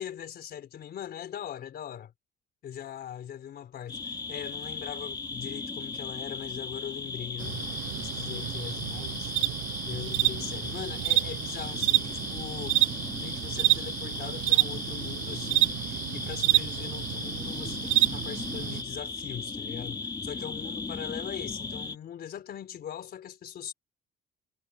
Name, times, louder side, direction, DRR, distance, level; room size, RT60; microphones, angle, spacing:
voice 1, 0.0-2.1 2.6-7.7 8.0-9.3 9.9-23.7, left 9 dB, 50° left, 4.0 m, -41 dB
sound 1, 3.9-22.0, left 4 dB, 20° left, 2.1 m, -37 dB
sound 2, 7.4-18.8, right 16 dB, 70° right, 0.5 m, -29 dB
cardioid pair, 170°, 21 cm